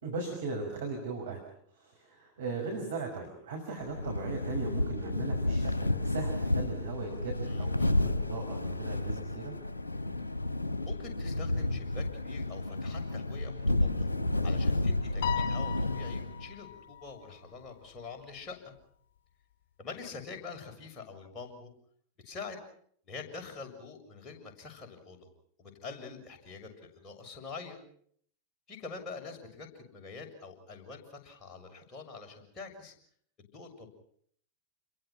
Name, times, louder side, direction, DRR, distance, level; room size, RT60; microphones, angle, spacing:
voice 1, 0.0-1.4 1.7-9.5, right 4 dB, 60° right, 2 dB, 5.7 m, -38 dB
sound 1, 3.8-16.5, left 2 dB, 80° left, 1.4 m, -31 dB
voice 2, 7.5-7.9 10.9-14.1 14.4-18.7 19.8-21.7 22.2-22.6 23.1-25.3 25.6-27.8 28.7-32.9 33.5-33.9, left 4 dB, 25° left, 3 dB, 7.0 m, -45 dB
Piano, 15.2-17.7, left 9 dB, 50° left, 5.1 m, -37 dB
29.0 x 22.5 x 5.9 m, 0.62 s
figure-of-eight pair, 90°, 0 cm